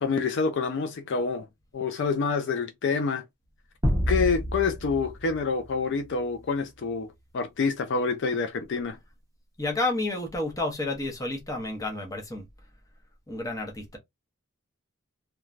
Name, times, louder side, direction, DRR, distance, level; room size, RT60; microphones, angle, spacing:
voice 1, 0.0-1.5 1.7-3.2 4.1-7.1 7.3-9.0, left 4 dB, 55° left, 0.4 m, -27 dB
sound 1, 3.8-6.4, equal, 15° right, 0.9 m, -29 dB
voice 2, 9.6-12.5 13.3-14.0, left 2 dB, 15° left, 0.7 m, -30 dB
3.1 x 2.2 x 2.4 m
head